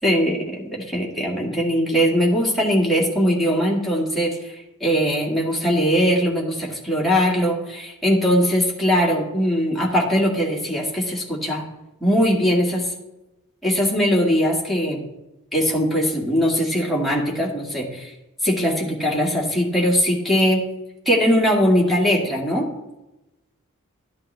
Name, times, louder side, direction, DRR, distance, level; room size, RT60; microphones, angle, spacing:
voice 1, 0.0-11.6 12.0-12.9 13.6-15.1 15.5-18.1 18.4-20.6 21.1-22.7, equal, ahead, -4 dB, 2.1 m, -20 dB
11.5 x 11.0 x 3.4 m, 0.97 s
head